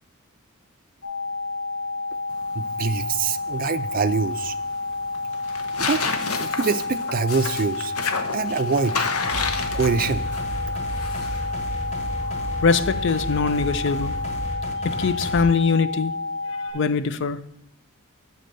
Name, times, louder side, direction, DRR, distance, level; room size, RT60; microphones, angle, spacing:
sound 1, 1.0-16.7, left 3 dB, 70° left, 1.9 m, -30 dB
sound 2, 2.3-14.5, left 5 dB, 90° left, 0.8 m, -33 dB
voice 1, 2.5-4.6 5.8-6.1 6.4-7.9 8.3-9.1 9.7-10.3, right 5 dB, 40° right, 11 dB, 0.4 m, -24 dB
sound 3, 9.2-15.4, equal, 30° left, 1.1 m, -32 dB
voice 2, 12.6-14.2 14.8-16.1 16.5-17.4, left 5 dB, 55° left, 13 dB, 0.4 m, -22 dB
7.7 x 4.2 x 6.7 m, 0.78 s
head